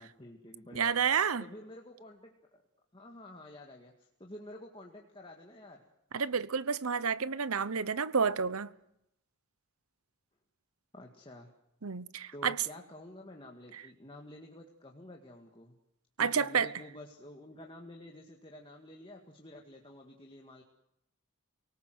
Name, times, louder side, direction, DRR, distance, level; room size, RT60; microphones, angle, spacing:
voice 1, 0.0-1.0 1.4-2.6 2.9-5.8 10.9-11.5 12.3-15.7 16.2-20.6, left 1 dB, 25° left, 2.0 m, -50 dB
voice 2, 0.7-1.4 6.1-8.7 11.8-12.6 13.7-13.8 16.2-16.7, right 6 dB, 85° right, 0.9 m, -30 dB
28.0 x 18.5 x 7.9 m
head